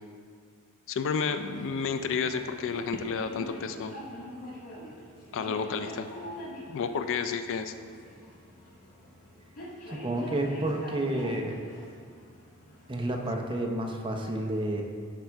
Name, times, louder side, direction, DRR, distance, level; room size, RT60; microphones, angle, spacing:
voice 1, 0.9-3.9 5.3-6.1 6.7-7.7, left 6 dB, 60° left, 9 dB, 0.4 m, -31 dB
sound 1, 1.2-13.1, equal, 80° left, 1.7 m, -44 dB
voice 2, 9.9-11.6 12.9-14.8, right 1 dB, 20° right, 2 dB, 0.6 m, -30 dB
10.5 x 3.6 x 4.6 m, 2.2 s
head